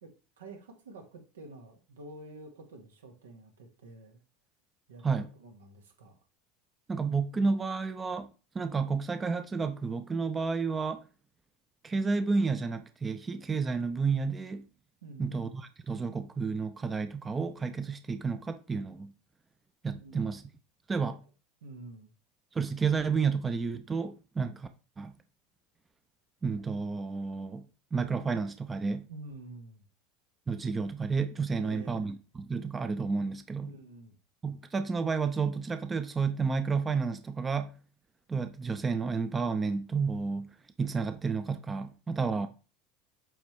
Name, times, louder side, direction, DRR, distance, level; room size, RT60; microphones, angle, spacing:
voice 1, 0.0-4.2 4.9-6.2 15.0-15.5 19.9-20.3 21.0-21.1 21.6-22.1 29.1-29.9 31.5-32.1 33.6-34.1, right 2 dB, 85° right, 1.5 m, -48 dB
voice 2, 6.9-8.3 8.5-11.1 11.8-14.6 15.2-19.1 19.8-20.4 20.9-21.2 22.5-24.7 25.0-25.1 26.4-27.7 27.9-29.1 30.5-33.7 34.4-37.7 38.3-40.5 40.8-42.5, right 4 dB, 20° right, 0.6 m, -31 dB
7.7 x 4.3 x 3.2 m
hypercardioid pair, 85°, 0 cm